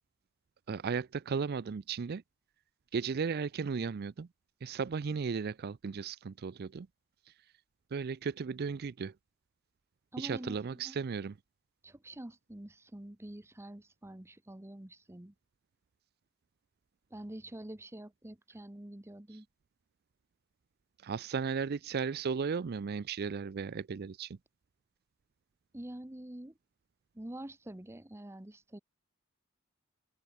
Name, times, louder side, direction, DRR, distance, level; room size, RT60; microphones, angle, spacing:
voice 1, 0.7-2.2 2.9-4.3 4.6-6.9 7.3-7.4 7.9-9.1 10.2-11.3 21.0-24.4, right 5 dB, 45° right, 0.4 m, -35 dB
voice 2, 10.1-11.0 11.8-15.3 17.1-19.5 25.7-26.5 27.1-28.8, right 1 dB, 10° right, 0.8 m, -46 dB
open air
head